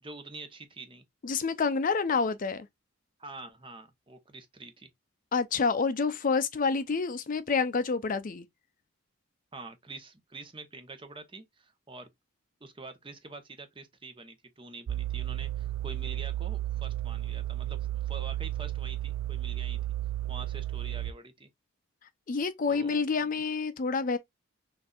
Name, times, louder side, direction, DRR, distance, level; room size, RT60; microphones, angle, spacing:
voice 1, 0.0-1.0 3.2-4.9 9.5-12.1 12.6-19.8 20.3-21.5 22.7-23.3, right 3 dB, 25° right, 0.9 m, -46 dB
voice 2, 1.2-2.7 5.3-8.5 22.3-24.2, left 4 dB, 40° left, 0.4 m, -28 dB
sound 1, 14.9-21.1, right 14 dB, 80° right, 0.3 m, -33 dB
6.4 x 2.6 x 2.4 m
head